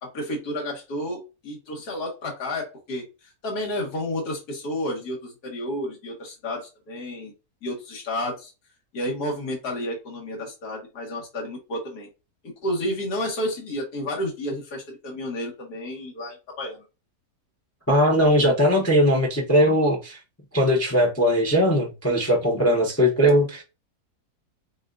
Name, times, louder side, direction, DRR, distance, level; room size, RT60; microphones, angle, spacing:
voice 1, 0.0-7.3 7.6-8.5 8.9-12.1 12.4-16.8, left 1 dB, 80° left, 2.0 m, -31 dB
voice 2, 17.9-20.2 20.5-23.6, equal, 15° left, 0.6 m, -19 dB
7.0 x 2.4 x 2.5 m
omnidirectional pair, 1.7 m